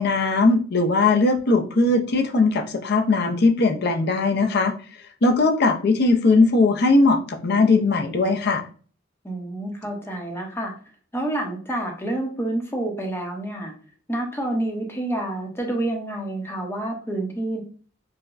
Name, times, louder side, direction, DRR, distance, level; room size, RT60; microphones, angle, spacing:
voice 1, 0.0-4.7 5.2-8.6, left 3 dB, 55° left, 5 dB, 0.5 m, -19 dB
voice 2, 9.2-10.7 11.1-13.7 14.1-17.6, right 1 dB, 10° left, 1 dB, 0.7 m, -28 dB
4.7 x 2.1 x 2.4 m, 0.42 s
head